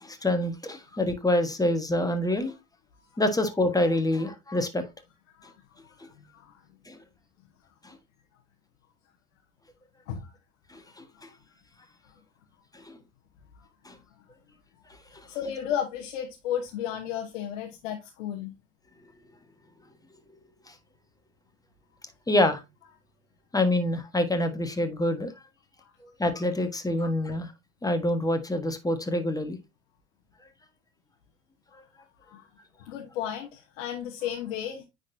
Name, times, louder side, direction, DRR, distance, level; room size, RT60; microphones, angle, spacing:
voice 1, 0.0-2.5 3.2-4.8 6.9-7.0 7.8-8.0 10.7-11.3 12.7-13.0 13.8-13.9 20.7-20.8 22.3-22.6 23.5-25.3 26.2-27.5 27.8-29.6, left 1 dB, 10° left, 1.4 m, -26 dB
voice 2, 6.1-6.6 10.1-10.3 11.1-11.3 13.6-13.7 15.2-18.5 25.8-25.9 32.2-32.5 32.8-34.8, left 9 dB, 75° left, 1.2 m, -34 dB
9.4 x 4.1 x 2.7 m
hypercardioid pair, 80°, 38 cm